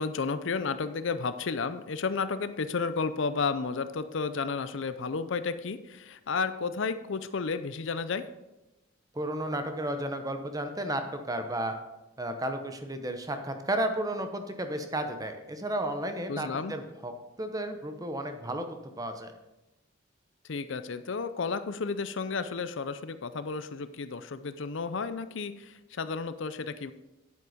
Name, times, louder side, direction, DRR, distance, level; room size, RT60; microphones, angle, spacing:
voice 1, 0.0-8.2 16.3-16.7 20.5-26.9, left 4 dB, 60° left, 12 dB, 0.5 m, -32 dB
voice 2, 9.1-11.7 12.2-17.1 17.4-19.3, right 1 dB, 15° right, 7 dB, 0.9 m, -33 dB
9.6 x 8.3 x 5.0 m, 1.0 s
head